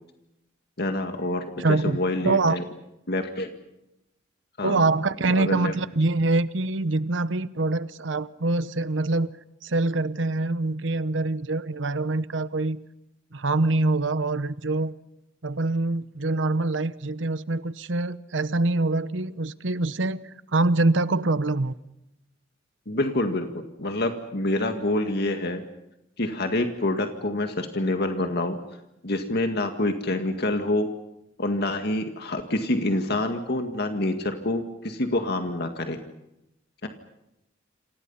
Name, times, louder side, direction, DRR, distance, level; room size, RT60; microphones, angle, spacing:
voice 1, 0.8-2.6 3.1-3.5 4.6-4.9 5.3-5.7 22.9-23.5 23.8-25.6 26.2-28.6 29.0-30.9 31.4-36.0 36.8-36.9, left 1 dB, 60° left, 2.0 m, -27 dB
voice 2, 1.6-2.6 4.6-9.3 9.6-12.8 13.3-14.9 15.4-21.8, right 2 dB, 75° right, 1.0 m, -25 dB
28.5 x 27.5 x 5.7 m
head